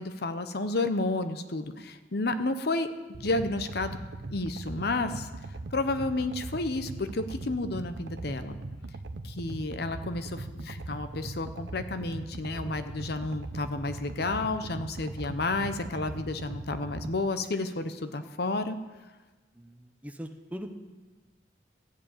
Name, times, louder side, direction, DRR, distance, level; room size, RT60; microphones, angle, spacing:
voice 1, 0.0-2.9 3.2-4.0 4.3-5.3 5.7-8.6 9.2-18.8, left 2 dB, 60° left, 10 dB, 0.8 m, -31 dB
sound 1, 3.1-17.2, right 2 dB, 90° right, 0.7 m, -40 dB
voice 2, 19.5-20.8, equal, 10° right, 5 dB, 0.8 m, -41 dB
14.0 x 7.5 x 8.8 m, 1.2 s
head